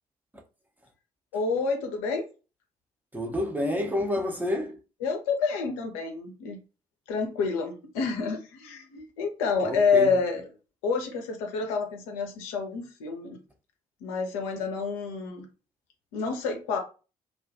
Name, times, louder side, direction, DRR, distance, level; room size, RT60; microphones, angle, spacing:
voice 1, 1.3-2.2 5.0-6.6 7.1-10.5 10.8-13.4 14.0-15.5 16.1-16.8, left 5 dB, 70° left, 0.6 m, -28 dB
voice 2, 3.1-4.8 9.6-10.1, left 1 dB, 10° right, 0.6 m, -29 dB
2.3 x 2.3 x 2.5 m
figure-of-eight pair, 45°, 19 cm